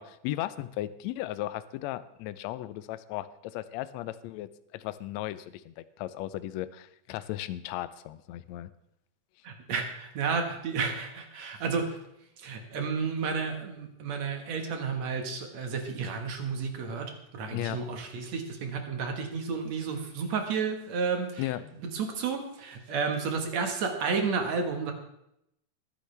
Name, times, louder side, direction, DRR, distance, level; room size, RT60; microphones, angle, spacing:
voice 1, 0.0-8.7 17.5-17.8 21.4-21.7, left 14 dB, 80° left, 14 dB, 1.6 m, -36 dB
voice 2, 9.4-12.0 12.4-21.5 21.9-24.9, right 5 dB, 60° right, 4 dB, 2.5 m, -31 dB
21.5 x 9.9 x 3.3 m, 0.78 s
omnidirectional pair, 3.8 m